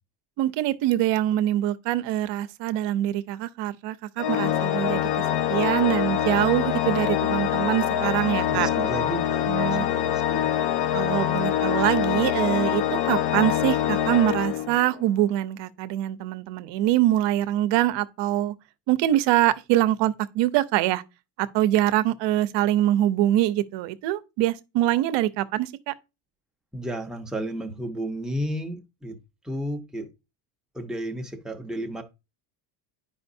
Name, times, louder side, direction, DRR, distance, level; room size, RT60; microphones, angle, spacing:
voice 1, 0.4-5.1 5.5-8.7 9.5-9.9 10.9-18.5 18.9-21.0 21.4-25.9, right 13 dB, 60° right, 0.8 m, -24 dB
Organ, 4.2-15.1, left 10 dB, 55° left, 0.6 m, -25 dB
voice 2, 8.5-10.5 26.7-29.2 29.4-30.1 30.7-32.0, right 1 dB, ahead, 0.6 m, -33 dB
10.5 x 5.0 x 2.7 m
cardioid pair, 145°, 49 cm